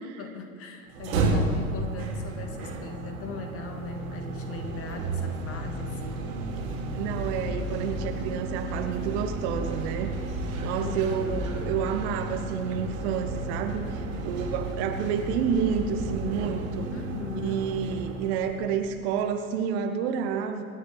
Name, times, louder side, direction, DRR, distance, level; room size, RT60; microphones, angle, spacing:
voice 1, 0.0-6.3 10.8-11.5 16.9-17.9, left 4 dB, 30° left, 4 dB, 2.2 m, -40 dB
sound 1, 0.9-19.0, right 2 dB, 65° right, 4.3 m, -32 dB
voice 2, 6.9-10.1 10.6-16.9 17.4-20.6, right 7 dB, 50° right, 6 dB, 1.6 m, -29 dB
26.5 x 10.5 x 4.1 m, 2.4 s
figure-of-eight pair, 90°, 43 cm